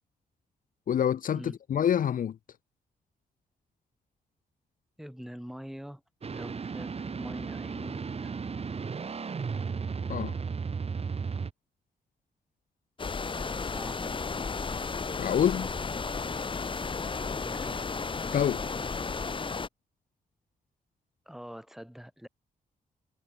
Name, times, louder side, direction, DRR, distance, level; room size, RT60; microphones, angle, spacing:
voice 1, 0.9-2.4 10.1-10.3 15.2-15.7 18.3-18.6, left 9 dB, 60° left, 0.8 m, -26 dB
voice 2, 5.0-8.3 13.2-14.2 17.2-17.9 21.3-22.3, equal, ahead, 4.7 m, -45 dB
sound 1, 6.2-11.5, right 5 dB, 40° right, 1.9 m, -35 dB
sound 2, 13.0-19.7, left 4 dB, 35° left, 1.7 m, -33 dB
cardioid pair, 95°, 16 cm